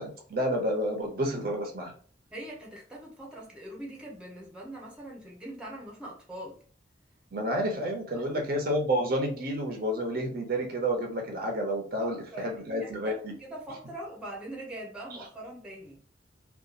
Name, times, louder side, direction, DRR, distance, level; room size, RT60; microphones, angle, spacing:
voice 1, 0.0-1.9 7.3-13.3, equal, 55° right, 0.5 m, -30 dB
voice 2, 2.3-6.6 8.1-8.3 12.0-16.0, right 1 dB, 5° right, 0.7 m, -42 dB
2.7 x 2.3 x 2.4 m
head